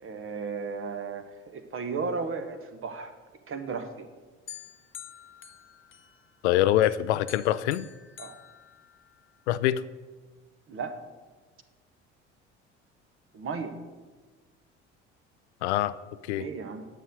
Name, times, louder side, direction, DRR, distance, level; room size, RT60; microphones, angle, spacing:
voice 1, 0.0-3.1 3.5-4.1 8.2-8.4 10.7-11.0 13.3-13.8 16.4-16.8, right 5 dB, 35° right, 8 dB, 1.2 m, -35 dB
sound 1, 4.5-6.4 6.8-9.4, left 9 dB, 35° left, 0.9 m, -48 dB
voice 2, 6.4-7.9 9.5-9.8 15.6-15.9 16.2-16.4, left 13 dB, 70° left, 16 dB, 0.5 m, -24 dB
9.8 x 6.5 x 6.8 m, 1.4 s
figure-of-eight pair, 60°, 36 cm